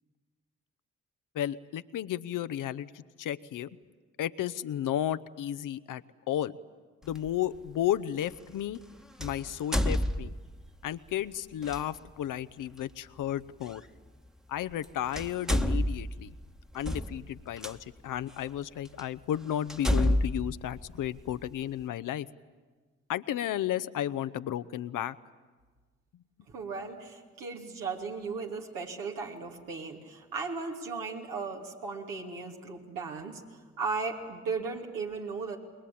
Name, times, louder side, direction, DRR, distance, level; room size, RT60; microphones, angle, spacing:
voice 1, 1.3-3.7 4.2-6.6 7.0-8.8 9.2-10.3 10.8-13.8 14.5-16.3 16.7-22.3 23.1-25.2, left 11 dB, 65° left, 15 dB, 0.8 m, -33 dB
sound 1, 7.1-7.3 9.2-10.7 11.6-11.8 13.7-13.8 14.7-14.8 15.1-17.7 18.4-18.5 19.0-19.1 19.7-21.5, equal, ahead, 1.3 m, -29 dB
voice 2, 26.5-33.4 33.8-35.6, right 4 dB, 75° right, 1 dB, 2.9 m, -36 dB
28.0 x 21.5 x 8.7 m, 1.4 s
hypercardioid pair, 40°, 33 cm